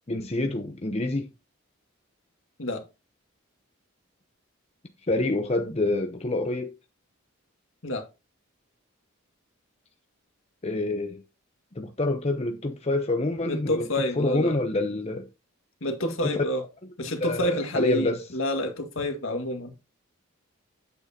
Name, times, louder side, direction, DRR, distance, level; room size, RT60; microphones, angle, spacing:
voice 1, 0.1-1.3 5.1-6.7 10.6-11.2 11.7-15.3 16.2-16.3 17.2-18.2, left 2 dB, 30° left, 0.8 m, -27 dB
voice 2, 13.4-14.6 15.8-16.6 17.0-19.7, left 1 dB, 70° left, 1.9 m, -28 dB
9.0 x 8.0 x 2.9 m
head